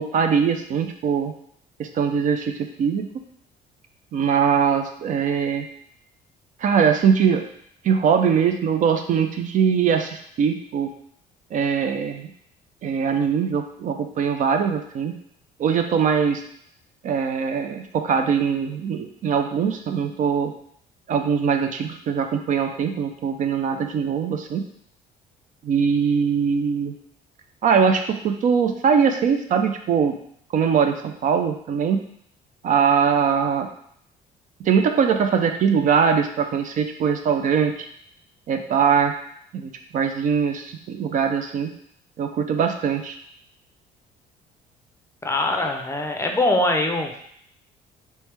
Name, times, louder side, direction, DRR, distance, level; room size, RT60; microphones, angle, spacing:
voice 1, 0.0-1.3 1.8-2.5 2.8-3.1 4.1-5.7 6.6-7.4 7.8-10.9 11.5-12.3 12.8-15.1 15.6-16.4 17.0-20.5 21.1-24.6 25.6-26.9 27.6-30.1 30.5-32.0 32.6-33.7 34.6-37.9 38.5-39.1 39.5-41.7 42.2-43.2, right 6 dB, 50° right, 5 dB, 0.4 m, -21 dB
voice 2, 45.2-47.1, left 2 dB, 15° left, 3 dB, 0.5 m, -22 dB
3.2 x 3.1 x 3.3 m, 0.68 s
cardioid pair, 110°, 17 cm